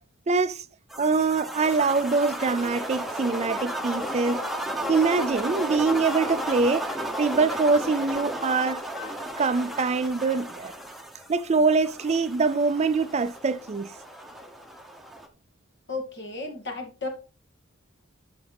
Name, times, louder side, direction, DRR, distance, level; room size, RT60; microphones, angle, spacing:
voice 1, 0.3-0.6 1.0-4.4 4.9-6.9 7.2-8.8 9.4-10.7 11.3-13.9, right 4 dB, 35° right, 0.4 m, -24 dB
sound 1, 0.9-15.3, right 1 dB, ahead, 1.0 m, -34 dB
voice 2, 15.9-17.1, left 3 dB, 60° left, 2.4 m, -34 dB
11.0 x 6.0 x 3.4 m
head